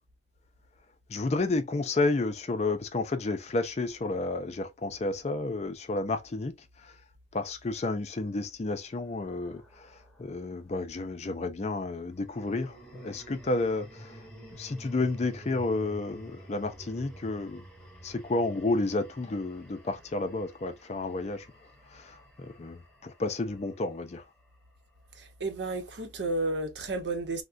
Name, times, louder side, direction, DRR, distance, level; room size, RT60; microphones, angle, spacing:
voice 1, 1.1-6.5 6.8-6.9 7.3-9.9 10.2-14.2 14.6-17.6 18.0-21.5 21.9-24.2, left 2 dB, 40° left, 0.4 m, -31 dB
sound 1, 8.3-10.5 12.1-24.4, right 1 dB, 5° left, 0.9 m, -51 dB
voice 2, 25.2-27.4, right 2 dB, 75° right, 0.8 m, -32 dB
3.6 x 2.1 x 2.4 m
head